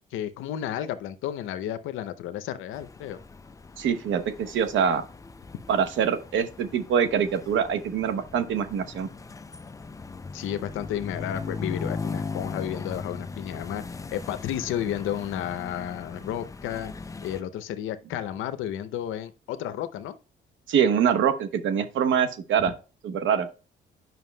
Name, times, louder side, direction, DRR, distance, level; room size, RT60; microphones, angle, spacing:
voice 1, 0.1-3.2 10.3-13.8 14.1-16.9 17.2-20.2, left 11 dB, 85° left, 0.6 m, -32 dB
sound 1, 2.7-17.4, left 4 dB, 15° left, 0.4 m, -38 dB
voice 2, 3.8-5.0 5.7-9.1 20.7-22.7 23.0-23.5, right 7 dB, 75° right, 0.8 m, -24 dB
9.1 x 5.7 x 2.2 m
cardioid pair, 90°, 20 cm